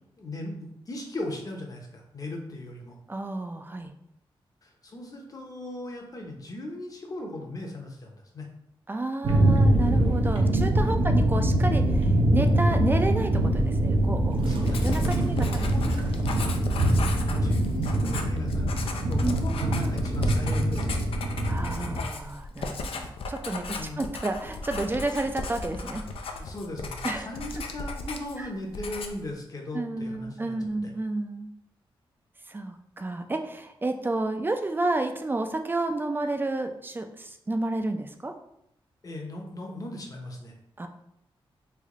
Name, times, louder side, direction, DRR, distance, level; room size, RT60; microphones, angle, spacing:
voice 1, 0.2-3.0 4.6-8.5 11.0-11.3 14.4-16.3 16.7-21.0 23.8-24.1 26.3-30.6 30.8-30.9 39.0-40.6, left 1 dB, 40° left, 1 dB, 0.7 m, -38 dB
voice 2, 3.1-3.9 8.9-14.5 14.8-15.7 16.3-16.5 19.2-19.4 21.5-26.0 27.0-27.3 29.7-31.5 32.5-38.3 40.8-40.9, right 2 dB, 20° right, 6 dB, 0.4 m, -31 dB
sound 1, 9.2-22.0, right 1 dB, 65° right, 0.6 m, -24 dB
Writing, 14.6-28.4 28.7-29.3, left 3 dB, 80° left, 0.4 m, -36 dB
3.3 x 2.2 x 3.6 m, 0.77 s
cardioid pair, 85°, 9 cm